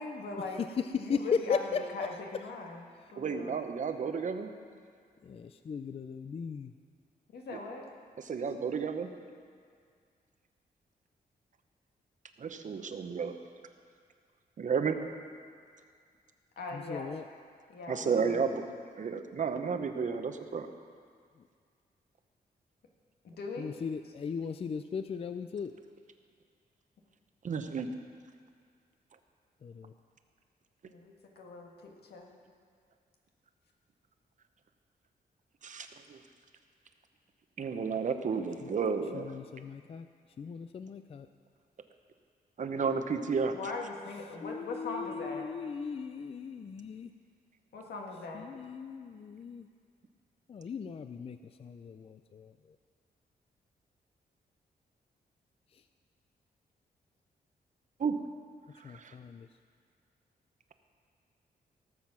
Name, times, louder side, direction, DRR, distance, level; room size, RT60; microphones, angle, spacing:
voice 1, 0.0-0.6 0.9-2.8 3.1-3.6 7.3-7.8 16.5-17.1 17.7-18.4 23.2-23.7 30.8-32.3 43.5-45.4 47.7-48.4, left 3 dB, 90° left, 0 dB, 1.8 m, -40 dB
voice 2, 0.8-1.8 3.4-3.5 5.2-6.7 16.7-17.2 23.6-25.7 29.6-29.9 38.6-38.7 39.1-40.1 40.4-41.3 44.4-47.1 48.3-49.7 50.5-52.5 58.8-59.5, left 6 dB, 40° left, 10 dB, 0.4 m, -37 dB
voice 3, 3.1-4.5 7.5-7.6 8.2-9.1 12.4-13.3 14.6-15.0 17.9-18.7 19.0-20.7 27.4-27.9 35.6-36.2 37.6-39.3 42.6-43.6 58.0-58.2 58.8-59.1, right 5 dB, 50° right, 7 dB, 0.8 m, -32 dB
17.5 x 7.3 x 6.0 m, 2.1 s
wide cardioid pair, 125°, 16 cm